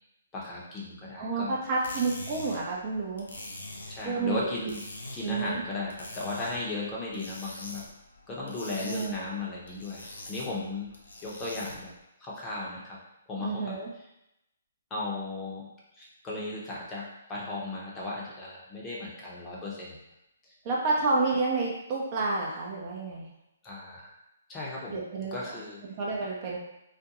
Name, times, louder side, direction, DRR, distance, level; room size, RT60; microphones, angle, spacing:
voice 1, 0.3-1.6 3.9-4.8 5.1-7.8 8.3-10.9 11.2-11.9 12.2-13.0 13.3-13.8 14.9-20.0 20.4-20.5 23.6-24.1 24.5-25.0 25.3-25.8, left 2 dB, 20° left, -5 dB, 0.7 m, -36 dB
voice 2, 1.2-3.3 4.0-4.4 5.2-5.6 8.8-9.2 13.4-13.9 20.6-23.3 24.9-25.4 26.0-26.6, right 3 dB, 35° right, -3 dB, 0.6 m, -29 dB
sound 1, 1.6-12.0, left 1 dB, 85° left, 0.5 m, -44 dB
2.4 x 2.2 x 2.9 m, 0.86 s
figure-of-eight pair, 135°, 0 cm